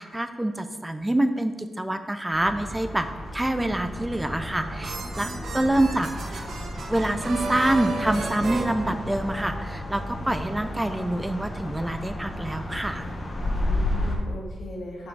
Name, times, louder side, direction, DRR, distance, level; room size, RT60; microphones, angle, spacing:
voice 1, 0.0-3.1 3.3-6.4 6.9-13.1, right 1 dB, 10° right, 9 dB, 0.3 m, -26 dB
sound 1, 2.3-14.2, left 1 dB, 45° left, 1.2 m, -33 dB
sound 2, 3.6-14.0, left 1 dB, 15° left, 0.7 m, -39 dB
sound 3, 4.3-9.6, right 3 dB, 70° right, 0.8 m, -34 dB
voice 2, 5.2-5.8 13.5-15.1, left 1 dB, 80° left, -3 dB, 1.6 m, -40 dB
5.6 x 5.0 x 4.6 m, 1.4 s
wide cardioid pair, 115°, 0 cm